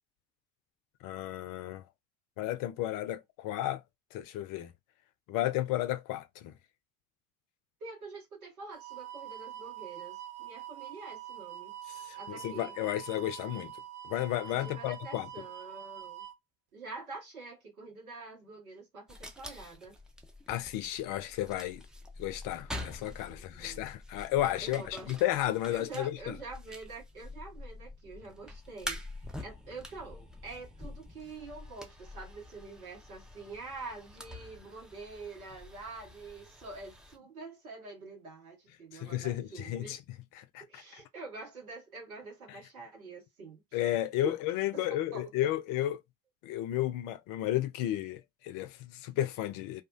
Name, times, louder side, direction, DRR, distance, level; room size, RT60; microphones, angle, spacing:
voice 1, 1.0-1.8 2.4-3.8 4.1-4.7 5.3-6.5 12.0-13.7 14.0-15.3 20.5-21.8 22.2-26.4 38.9-40.0 40.4-40.8 43.7-46.0 46.4-49.8, left 13 dB, 50° left, 0.5 m, -33 dB
voice 2, 7.8-11.8 12.1-12.7 14.5-16.3 16.7-20.0 23.3-23.8 24.6-25.2 25.7-40.0 40.6-43.6 44.2-44.3 44.7-45.5, right 3 dB, 80° right, 1.1 m, -46 dB
sound 1, 8.7-16.3, right 11 dB, 50° right, 0.6 m, -45 dB
sound 2, 19.1-37.2, left 1 dB, ahead, 0.4 m, -46 dB
2.4 x 2.1 x 2.4 m
figure-of-eight pair, 50°, 42 cm